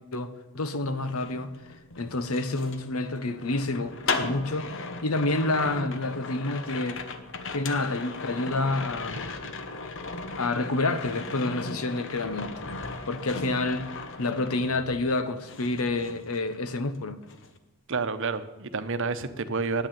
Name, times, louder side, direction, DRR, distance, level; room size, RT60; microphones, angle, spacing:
voice 1, 0.1-1.5 2.0-7.0 7.5-9.3 10.4-12.7 13.0-13.9 14.2-17.2, left 2 dB, 85° left, 1.1 m, -28 dB
sound 1, 1.0-15.2 15.5-17.0 17.2-17.6, left 3 dB, 60° left, 1.0 m, -37 dB
voice 2, 17.9-19.9, right 4 dB, 60° right, 0.9 m, -29 dB
9.6 x 9.2 x 8.6 m
head